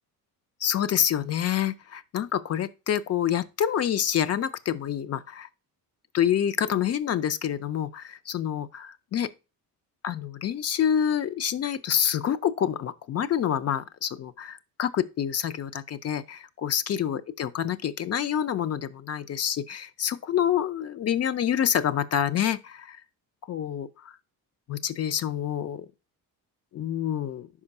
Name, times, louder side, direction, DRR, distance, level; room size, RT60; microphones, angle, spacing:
voice 1, 0.6-5.5 6.1-9.3 10.0-23.0 23.5-24.1 24.7-25.9 26.7-27.5, left 9 dB, 40° left, 0.4 m, -27 dB
5.2 x 4.9 x 5.3 m
cardioid pair, 140°, 41 cm